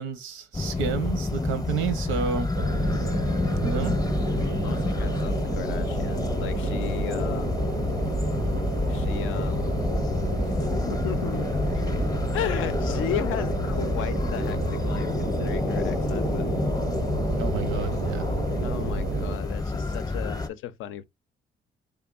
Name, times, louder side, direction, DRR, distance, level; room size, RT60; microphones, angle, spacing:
voice 1, 0.0-2.5 3.6-4.0 17.4-18.3, right 6 dB, 90° right, 0.8 m, -30 dB
sound 1, 0.5-20.5, left 3 dB, 20° left, 0.6 m, -28 dB
sound 2, 2.5-19.4, right 7 dB, 50° right, 0.4 m, -32 dB
voice 2, 4.6-7.7 8.9-9.9 10.4-11.5 11.7-11.9 12.3-16.5 18.6-21.0, left 11 dB, 85° left, 0.5 m, -35 dB
3.6 x 3.5 x 2.3 m
cardioid pair, 90°, 20 cm